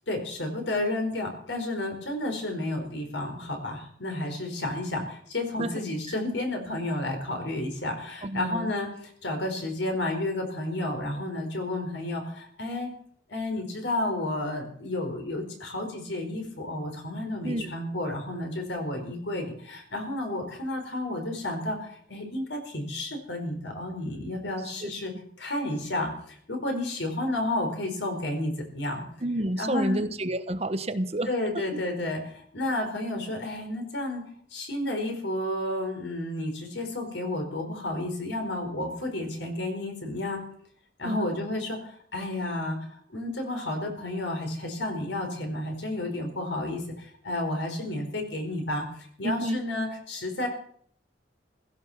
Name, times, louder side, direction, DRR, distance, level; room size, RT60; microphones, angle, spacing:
voice 1, 0.1-8.9 9.2-12.9 13.3-25.1 25.4-29.0 29.6-30.1 31.3-40.4 41.0-42.8 43.1-50.5, left 1 dB, 80° left, 3 dB, 4.8 m, -31 dB
voice 2, 8.2-8.7 17.4-17.7 24.8-25.1 29.2-31.7 41.0-41.3 49.2-49.6, right 1 dB, 35° right, 10 dB, 1.0 m, -30 dB
16.0 x 14.5 x 5.9 m, 0.62 s
head